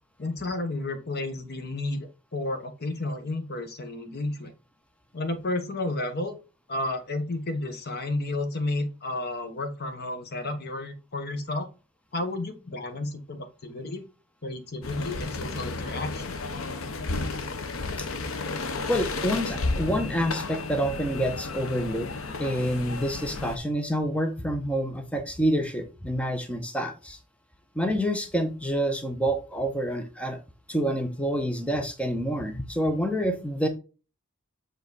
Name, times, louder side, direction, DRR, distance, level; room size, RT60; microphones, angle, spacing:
voice 1, 0.2-4.5 5.1-6.4 6.7-11.7 12.1-14.0 14.4-16.4, left 2 dB, 50° left, 8 dB, 1.2 m, -32 dB
sound 1, 14.8-23.6, left 3 dB, 80° left, 0.9 m, -32 dB
voice 2, 18.9-27.2 27.7-30.4 30.7-33.7, equal, 5° left, 6 dB, 0.9 m, -28 dB
7.2 x 3.9 x 4.1 m, 0.32 s
head